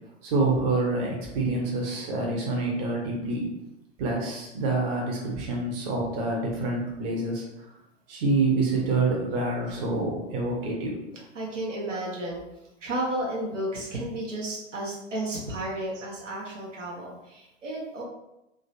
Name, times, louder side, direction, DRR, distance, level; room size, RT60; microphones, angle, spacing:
voice 1, 0.2-3.5 4.0-7.4 8.1-11.0 15.1-15.6 16.0-16.1, right 3 dB, 50° right, -2 dB, 1.1 m, -27 dB
voice 2, 11.3-12.4 12.8-18.0, right 1 dB, 80° right, -4 dB, 1.1 m, -32 dB
3.8 x 3.1 x 2.7 m, 0.90 s
figure-of-eight pair, 95°, 37 cm